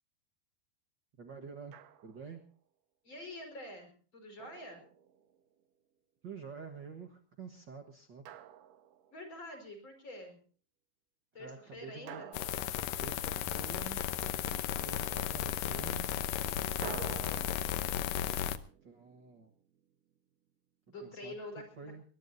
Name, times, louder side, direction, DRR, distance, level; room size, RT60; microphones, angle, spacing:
voice 1, 1.2-1.7 2.0-2.4 6.2-8.2 11.4-12.2 13.0-14.0 14.3-16.1 18.8-19.5 21.0-21.4 21.8-22.0, right 5 dB, 90° right, 5 dB, 0.9 m, -48 dB
Drum, 1.7-2.4 4.4-5.5 8.3-9.4 12.1-13.7 16.8-19.8, right 10 dB, 65° right, 2.4 m, -50 dB
voice 2, 3.0-4.8 9.1-10.4 11.3-12.3 20.9-21.9, left 1 dB, 30° left, 6 dB, 5.6 m, -47 dB
sound 1, 12.3-18.6, left 11 dB, 70° left, 2.1 m, -35 dB
21.5 x 21.0 x 2.7 m, 0.41 s
omnidirectional pair, 4.6 m